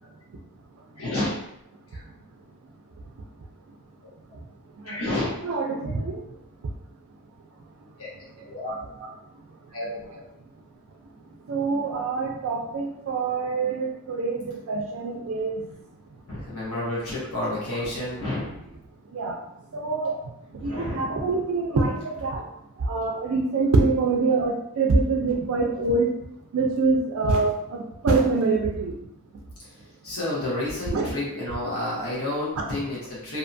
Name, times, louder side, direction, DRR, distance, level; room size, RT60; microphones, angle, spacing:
voice 1, 1.0-1.3 1.9-2.0 4.8-5.3 5.6-5.7 8.0-8.1 8.5-8.8 9.7-9.9 16.3-18.6 20.6-21.3 30.0-33.4, left 1 dB, 80° left, -7 dB, 0.9 m, -30 dB
voice 2, 5.4-6.2 8.4-8.5 9.0-9.1 11.5-15.6 19.1-19.4 19.7-20.2 20.5-22.5 22.8-26.1 26.5-29.0 30.9-31.1, right 3 dB, 70° right, 1 dB, 0.4 m, -25 dB
2.7 x 2.2 x 2.6 m, 0.81 s
head